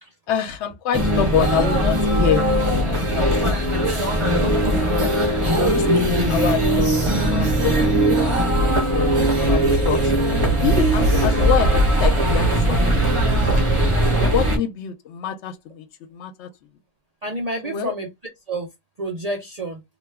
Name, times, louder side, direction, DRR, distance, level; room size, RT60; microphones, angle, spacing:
voice 1, 0.3-3.9 4.5-5.1 5.5-13.7 14.2-16.5 17.6-17.9, left 9 dB, 65° left, 0.8 m, -27 dB
sound 1, 0.9-14.6, right 1 dB, 30° right, 0.7 m, -19 dB
voice 2, 4.4-4.9 17.2-18.1 18.5-18.7 19.0-19.8, right 1 dB, 60° right, 0.4 m, -29 dB
2.8 x 2.2 x 3.2 m
omnidirectional pair, 1.5 m